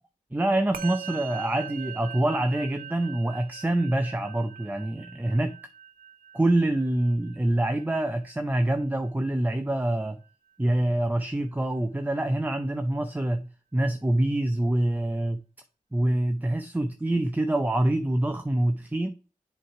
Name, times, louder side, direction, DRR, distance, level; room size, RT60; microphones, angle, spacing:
voice 1, 0.3-5.5 6.3-10.2 10.6-15.4 15.9-19.1, right 1 dB, 10° right, 0.6 m, -26 dB
Musical instrument, 0.7-10.3, right 9 dB, 80° right, 0.6 m, -43 dB
7.5 x 3.3 x 4.5 m
cardioid pair, 40°, 14 cm